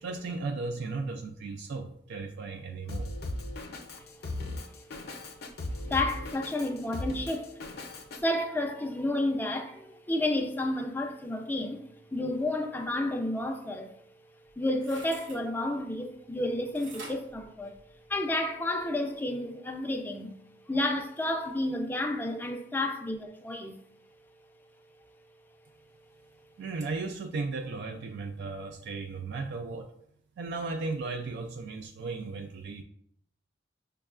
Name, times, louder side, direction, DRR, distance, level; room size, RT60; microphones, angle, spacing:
voice 1, 0.0-3.1 26.6-29.9 30.4-32.8, right 3 dB, 60° right, 0.3 m, -35 dB
Drum kit, 2.9-8.2, left 2 dB, 55° left, 0.6 m, -37 dB
voice 2, 3.9-7.6 8.1-13.9 14.6-17.7 18.1-20.4 20.7-23.8, left 1 dB, 10° left, 0.4 m, -31 dB
sound 1, 14.5-15.4 16.8-18.3 18.8-18.9, right 2 dB, 75° right, 0.9 m, -47 dB
6.1 x 2.2 x 2.3 m
head